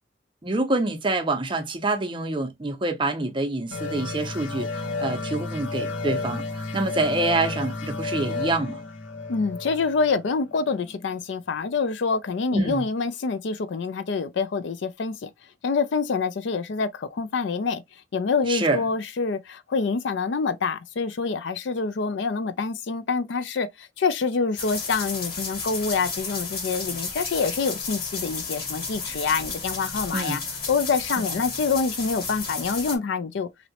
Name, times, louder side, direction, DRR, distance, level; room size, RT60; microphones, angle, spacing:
voice 1, 0.4-8.8 12.5-12.8 18.5-18.8 30.1-30.4 31.2-31.4, right 2 dB, 25° right, 0.6 m, -26 dB
sound 1, 3.7-11.0, left 3 dB, 90° left, 0.8 m, -32 dB
voice 2, 9.3-15.3 15.6-17.8 18.1-30.4 30.7-33.5, left 4 dB, 65° left, 0.4 m, -26 dB
sound 2, 24.6-33.0, left 4 dB, 50° left, 1.4 m, -32 dB
3.0 x 2.7 x 2.8 m
head